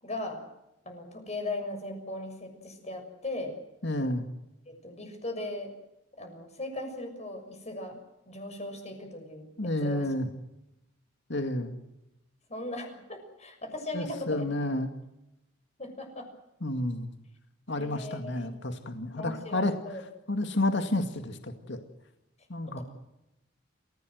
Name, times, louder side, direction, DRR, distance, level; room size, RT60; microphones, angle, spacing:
voice 1, 0.0-0.4 0.8-3.6 4.7-5.7 6.2-8.0 8.3-10.1 12.5-14.4 15.8-16.3 17.8-18.5 19.2-20.0 22.6-22.8, left 2 dB, 35° left, 5 dB, 6.7 m, -38 dB
voice 2, 3.8-4.2 9.6-10.3 11.3-11.8 13.9-14.9 16.6-17.1 17.7-19.7 20.3-21.8 22.5-22.8, left 1 dB, 65° left, 7 dB, 2.2 m, -30 dB
28.5 x 16.5 x 8.0 m, 0.90 s
head